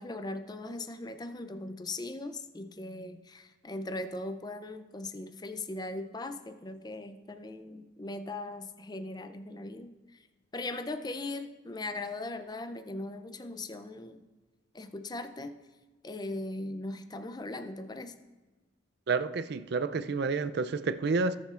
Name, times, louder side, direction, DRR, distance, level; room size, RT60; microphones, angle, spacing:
voice 1, 0.0-10.3 10.5-14.2 14.7-15.5 16.0-18.1, left 2 dB, 20° left, 0.4 m, -39 dB
voice 2, 19.1-21.4, right 4 dB, 55° right, 0.4 m, -29 dB
19.5 x 7.2 x 2.5 m
head